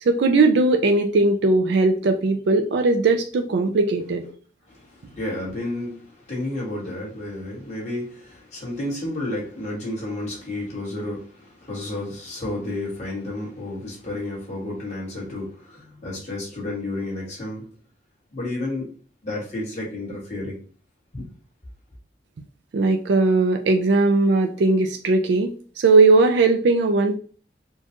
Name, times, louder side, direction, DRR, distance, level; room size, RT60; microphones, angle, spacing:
voice 1, 0.0-4.2 22.7-27.2, right 3 dB, 75° right, 0.4 m, -19 dB
voice 2, 4.7-17.6 18.3-18.9 19.2-20.6 21.1-21.3, left 1 dB, 40° left, 1.7 m, -31 dB
4.4 x 2.3 x 2.9 m
head